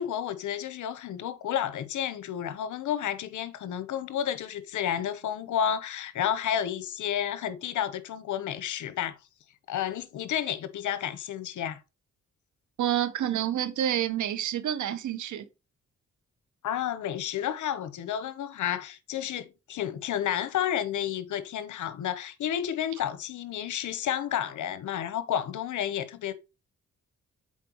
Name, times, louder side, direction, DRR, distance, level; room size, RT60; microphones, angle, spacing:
voice 1, 0.0-9.2 9.7-11.8 16.6-26.3, left 10 dB, 85° left, 0.8 m, -31 dB
voice 2, 12.8-15.5, right 11 dB, 80° right, 0.8 m, -28 dB
7.4 x 4.4 x 2.9 m
cardioid pair, 70°, 29 cm